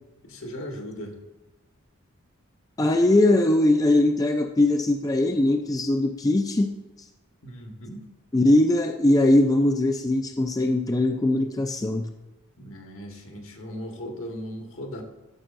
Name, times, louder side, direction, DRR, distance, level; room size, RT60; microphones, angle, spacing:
voice 1, 0.3-1.1 7.4-8.0 12.6-15.0, equal, 70° left, 2 dB, 1.5 m, -37 dB
voice 2, 2.8-6.8 8.3-12.0, left 1 dB, 15° left, 5 dB, 0.4 m, -21 dB
13.5 x 6.4 x 2.5 m, 1.1 s
head